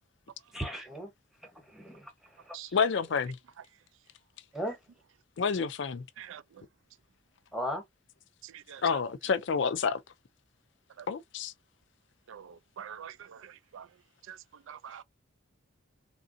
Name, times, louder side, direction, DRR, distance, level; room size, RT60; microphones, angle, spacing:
voice 1, 0.5-1.1 1.4-2.8 4.5-4.8 7.5-7.8, equal, ahead, 0.9 m, -37 dB
voice 2, 2.7-3.4 5.4-6.0 8.8-10.0 11.1-11.5, left 5 dB, 60° left, 0.4 m, -28 dB
voice 3, 8.4-9.0 11.0-11.1 12.3-14.0 14.2-15.0, right 9 dB, 70° right, 0.4 m, -46 dB
3.4 x 2.6 x 2.5 m
head